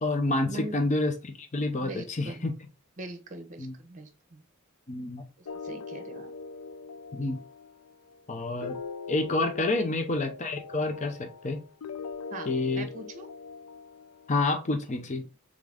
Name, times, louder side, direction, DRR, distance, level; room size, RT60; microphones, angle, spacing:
voice 1, 0.0-2.5 3.6-3.7 4.9-5.3 7.1-7.4 8.3-8.8 9.1-11.6 12.5-12.9 14.3-15.3, left 2 dB, 30° left, 6 dB, 0.6 m, -28 dB
voice 2, 1.8-2.5 3.0-4.4 5.4-6.3 9.7-9.9 12.3-12.5 12.7-13.3, right 2 dB, 35° right, 6 dB, 0.8 m, -41 dB
sound 1, 5.5-14.6, left 5 dB, 80° left, 0.5 m, -42 dB
3.8 x 3.6 x 3.4 m, 0.31 s
head